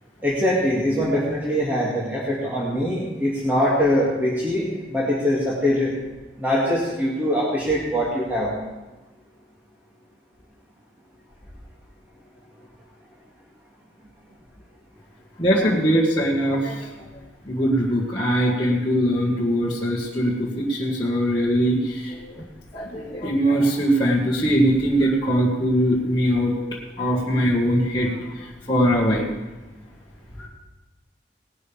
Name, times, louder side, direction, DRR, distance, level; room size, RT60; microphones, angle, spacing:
voice 1, 0.2-5.9 6.4-8.5, equal, 10° right, -7 dB, 2.3 m, -22 dB
voice 2, 15.4-16.9 17.5-22.3 22.7-26.5 27.0-29.3 30.4-30.5, equal, 25° left, -7 dB, 1.9 m, -21 dB
18.5 x 12.0 x 3.5 m, 1.2 s
head